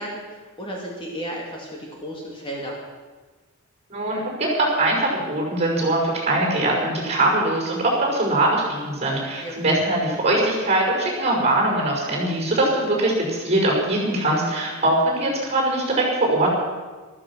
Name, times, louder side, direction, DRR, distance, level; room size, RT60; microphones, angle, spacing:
voice 1, 0.0-2.8 9.4-9.8, equal, 25° left, -2 dB, 2.4 m, -34 dB
voice 2, 3.9-16.5, right 1 dB, 30° right, -1 dB, 5.5 m, -22 dB
14.0 x 14.0 x 6.3 m, 1.3 s
head